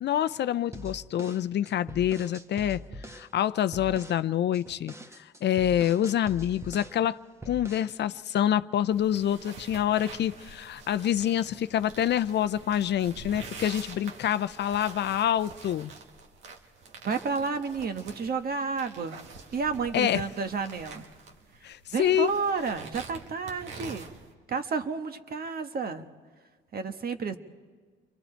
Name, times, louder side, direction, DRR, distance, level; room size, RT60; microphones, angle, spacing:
voice 1, 0.0-2.8 3.1-7.2 7.5-15.9 19.9-20.2 21.6-22.3, left 10 dB, 60° left, 14 dB, 0.5 m, -27 dB
sound 1, 0.7-3.3 3.7-4.2 4.5-7.0 7.4-7.9, equal, 15° right, 1.2 m, -43 dB
sound 2, 8.9-24.3, right 4 dB, 80° right, 2.0 m, -46 dB
voice 2, 17.0-19.2 19.5-21.1 21.9-24.0 24.5-26.1 26.7-27.4, right 5 dB, 50° right, 8 dB, 1.3 m, -31 dB
29.5 x 23.5 x 4.5 m, 1.5 s
cardioid pair, 90°, 20 cm